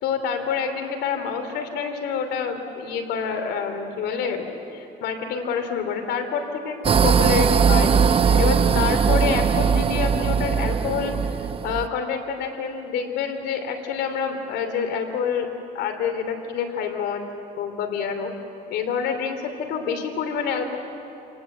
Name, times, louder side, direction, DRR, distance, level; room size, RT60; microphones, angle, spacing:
voice 1, 0.0-15.5 15.7-17.3 17.6-18.3 18.7-20.8, left 6 dB, 80° left, 6 dB, 2.9 m, -27 dB
sound 1, 6.8-11.9, right 6 dB, 35° right, 0.8 m, -20 dB
27.5 x 19.0 x 8.0 m, 2.8 s
cardioid pair, 110°, 17 cm